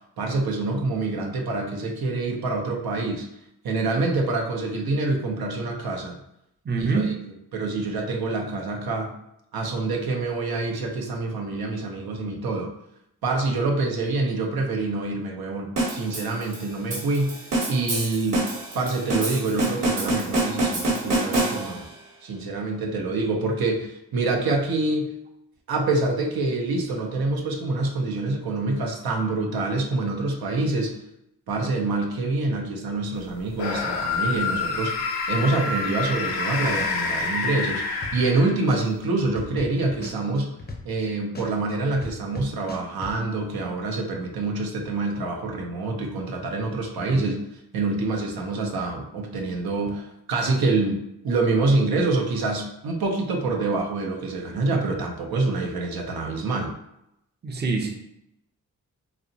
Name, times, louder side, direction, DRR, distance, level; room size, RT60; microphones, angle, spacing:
voice 1, 0.2-3.3 3.6-6.2 6.8-7.1 7.5-9.1 9.5-12.7 13.2-17.4 17.7-18.5 18.7-21.9 22.2-25.1 25.7-31.0 31.5-40.5 40.8-47.4 47.7-56.8, right 3 dB, 80° right, 1 dB, 0.5 m, -26 dB
voice 2, 6.6-7.2 47.0-47.2 57.4-57.9, right 4 dB, 30° right, 2 dB, 0.5 m, -25 dB
sound 1, 15.8-22.0, right 2 dB, 55° right, 0.9 m, -26 dB
sound 2, 33.5-38.8, left 4 dB, 90° left, 0.5 m, -27 dB
sound 3, 38.0-38.4 38.7-41.0 41.3-43.1, left 2 dB, 25° left, 0.5 m, -36 dB
2.8 x 2.0 x 2.6 m, 0.81 s
cardioid pair, 50°, 36 cm